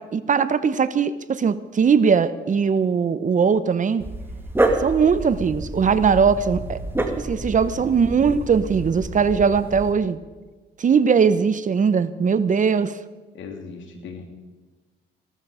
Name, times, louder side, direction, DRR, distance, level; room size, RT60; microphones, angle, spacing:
voice 1, 0.0-4.0 4.8-6.8 7.2-10.2 10.8-13.0, right 6 dB, 40° right, 14 dB, 0.9 m, -20 dB
Dog, 4.0-9.9, right 1 dB, 10° right, 1.9 m, -28 dB
voice 2, 13.3-14.2, left 5 dB, 75° left, 4 dB, 2.9 m, -38 dB
16.5 x 13.0 x 5.0 m, 1.3 s
cardioid pair, 90°, 20 cm